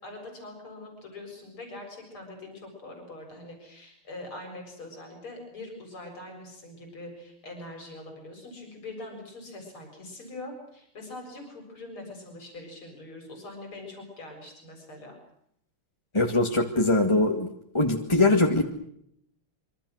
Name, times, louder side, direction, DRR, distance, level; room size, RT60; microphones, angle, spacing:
voice 1, 0.0-15.2, left 2 dB, 75° left, 2 dB, 8.1 m, -43 dB
voice 2, 16.1-17.5 17.7-18.6, left 2 dB, 15° left, 1 dB, 1.9 m, -22 dB
27.0 x 24.5 x 6.5 m, 0.72 s
omnidirectional pair, 2.3 m